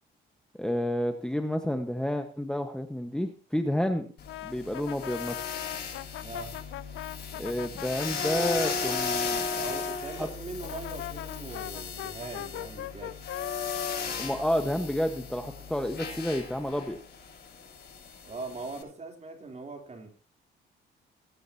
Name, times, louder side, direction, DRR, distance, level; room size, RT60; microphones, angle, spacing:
voice 1, 0.6-4.1 4.4-5.4 7.3-9.6 10.2-10.3 14.2-17.0, left 1 dB, 5° left, 6 dB, 1.4 m, -30 dB
sound 1, 4.2-18.8, left 4 dB, 55° left, 7.9 m, -36 dB
Brass instrument, 4.3-10.0 10.6-15.4, left 14 dB, 75° left, 0.6 m, -39 dB
voice 2, 6.2-6.6 9.5-13.5 18.2-20.1, right 3 dB, 35° right, 4 dB, 3.6 m, -41 dB
21.0 x 10.5 x 2.9 m, 0.37 s
cardioid pair, 90°, 20 cm